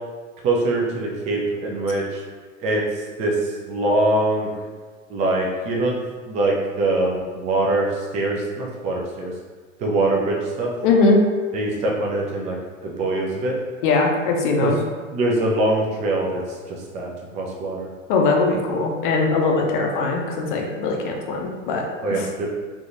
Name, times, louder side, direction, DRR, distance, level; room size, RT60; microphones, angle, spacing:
voice 1, 0.4-2.2 2.6-2.8 3.2-4.5 5.1-6.0 6.3-9.3 9.8-10.7 11.5-12.6 12.8-13.6 14.6-14.7 15.1-16.4 16.7-17.9 22.0-22.4, right 2 dB, 20° right, -2 dB, 0.4 m, -23 dB
voice 2, 10.8-11.2 13.8-14.8 18.1-21.8 22.1-22.3, left 3 dB, 40° left, 1 dB, 0.6 m, -20 dB
3.4 x 2.9 x 2.6 m, 1.4 s
figure-of-eight pair, 95°, 41 cm